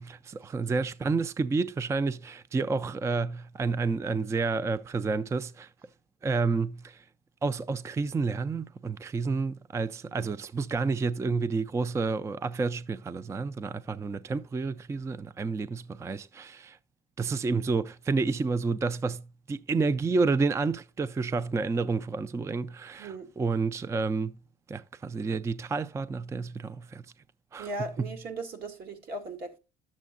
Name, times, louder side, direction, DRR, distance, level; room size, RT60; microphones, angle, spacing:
voice 1, 0.0-5.7 6.2-7.0 7.4-16.8 17.2-24.4 24.7-27.0 27.5-27.7 28.0-28.1, right 4 dB, 15° right, 0.3 m, -30 dB
voice 2, 27.6-29.6, right 2 dB, 70° right, 2.4 m, -37 dB
11.5 x 7.3 x 2.4 m
cardioid pair, 110°, 17 cm